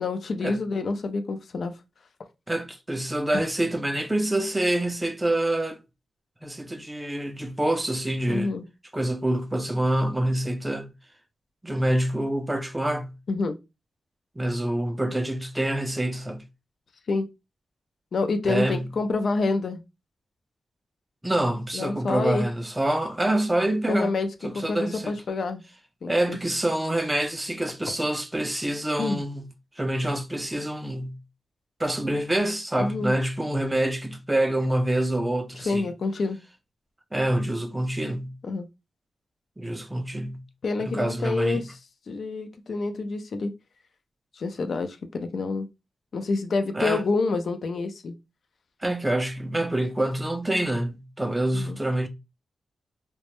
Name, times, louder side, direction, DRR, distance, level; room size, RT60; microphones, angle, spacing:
voice 1, 0.0-1.8 3.3-3.5 8.3-8.7 13.3-13.6 17.1-17.3 18.1-19.8 21.7-22.5 23.9-25.6 26.0-26.4 29.0-29.2 32.8-33.1 35.6-36.4 38.4-38.7 40.6-41.8 42.1-43.5 44.3-45.7 46.1-48.1 51.5-51.8, left 3 dB, 60° left, 0.4 m, -27 dB
voice 2, 2.5-5.8 6.4-8.5 8.9-10.9 11.6-13.1 14.4-16.4 18.5-18.8 21.2-24.2 24.4-25.2 26.1-29.5 29.8-31.2 31.8-35.9 37.1-38.4 39.6-40.4 40.8-41.6 46.7-47.0 48.8-52.1, right 1 dB, 15° right, 0.4 m, -26 dB
2.1 x 2.0 x 2.9 m
cardioid pair, 95°, 0 cm